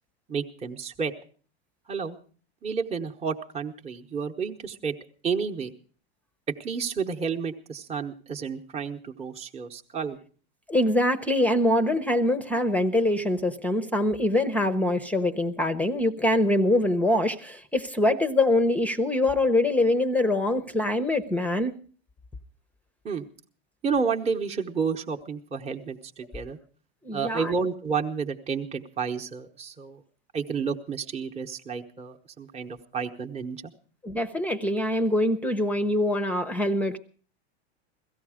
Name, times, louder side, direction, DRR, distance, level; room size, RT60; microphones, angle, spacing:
voice 1, 0.3-1.1 1.9-2.2 2.6-4.9 5.2-5.7 6.5-10.2 23.0-23.2 23.8-26.6 27.1-30.0 30.3-33.7, right 5 dB, 20° right, 1.0 m, -31 dB
voice 2, 10.7-21.7 27.0-27.5 34.0-37.0, left 1 dB, 5° left, 0.7 m, -24 dB
17.0 x 14.0 x 5.0 m
supercardioid pair, 125°, 32 cm